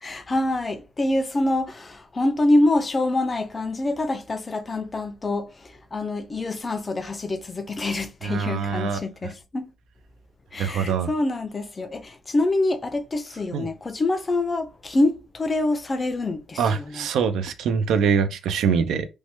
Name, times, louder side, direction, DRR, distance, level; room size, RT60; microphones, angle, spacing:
voice 1, 0.0-9.7 10.5-17.1, left 2 dB, 30° left, 0.4 m, -25 dB
voice 2, 8.2-9.0 10.6-11.1 13.5-13.7 16.6-19.1, right 6 dB, 80° right, 0.3 m, -23 dB
3.1 x 2.1 x 2.9 m
cardioid pair, 90°, 0 cm